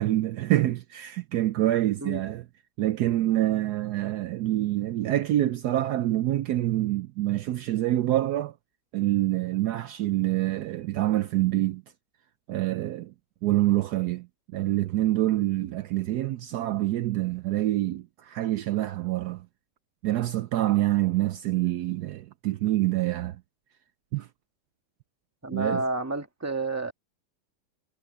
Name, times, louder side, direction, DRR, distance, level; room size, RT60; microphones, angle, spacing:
voice 1, 0.0-2.4 2.8-8.5 8.9-11.8 12.5-13.1 13.4-14.3 14.5-19.4 20.0-23.4 24.1-24.3 25.5-25.8, right 15 dB, 70° right, 1.1 m, -26 dB
voice 2, 25.4-26.9, right 2 dB, 10° right, 1.6 m, -30 dB
omnidirectional pair, 1.9 m